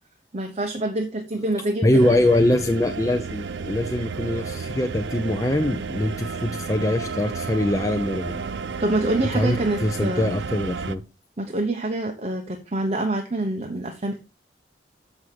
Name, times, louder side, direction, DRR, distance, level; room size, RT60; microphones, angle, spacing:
voice 1, 0.3-2.2 8.8-10.3 11.4-14.2, right 2 dB, 40° right, 3 dB, 0.9 m, -26 dB
voice 2, 1.8-8.4 9.3-11.0, left 1 dB, 20° left, 5 dB, 0.6 m, -23 dB
sound 1, 1.9-10.9, right 5 dB, 85° right, 0.5 m, -32 dB
7.3 x 6.3 x 4.8 m, 0.30 s
head